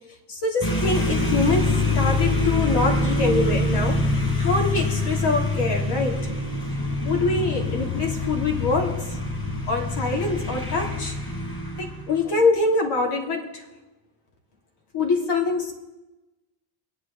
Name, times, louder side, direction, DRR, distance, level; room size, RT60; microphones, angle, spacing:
voice 1, 0.3-4.0 4.4-6.2 7.0-9.2 9.7-11.2 11.8-13.6 14.9-15.7, left 3 dB, 60° left, 1 dB, 3.1 m, -24 dB
sound 1, 0.6-12.3, left 2 dB, 25° left, 4.2 m, -25 dB
23.0 x 9.9 x 3.9 m, 1.0 s
cardioid pair, 105°, 46 cm